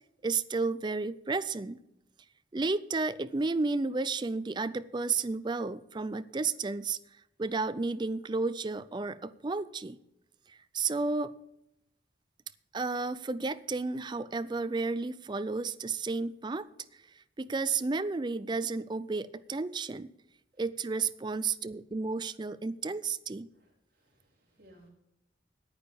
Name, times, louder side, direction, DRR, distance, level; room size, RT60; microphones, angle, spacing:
voice 1, 0.2-1.8 2.5-7.0 7.4-10.0 10.5-11.3 12.7-16.7 17.4-20.1 20.6-23.5, right 3 dB, 25° right, 14 dB, 0.4 m, -32 dB
voice 2, 23.5-24.9, right 1 dB, 55° right, -2 dB, 3.9 m, -61 dB
9.7 x 8.8 x 6.8 m, 0.85 s
head